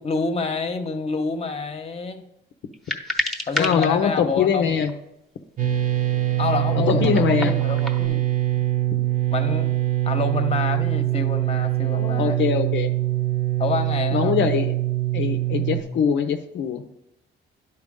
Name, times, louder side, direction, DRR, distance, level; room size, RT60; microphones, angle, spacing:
voice 1, 0.0-2.2 3.5-4.6 6.4-8.2 8.5-8.6 9.3-9.8 10.0-12.4 13.6-14.6, left 4 dB, 30° left, 7 dB, 1.0 m, -28 dB
sound 1, 2.7-3.9 4.8-4.9 6.9-8.1, left 1 dB, ahead, 1.0 m, -29 dB
voice 2, 3.6-4.9 6.8-7.5 11.9-12.9 14.1-14.7 15.1-16.9, left 7 dB, 70° left, 6 dB, 0.6 m, -22 dB
sound 2, 5.6-15.8, right 15 dB, 45° right, 1.0 m, -23 dB
11.0 x 4.5 x 3.7 m, 0.83 s
cardioid pair, 90°, 20 cm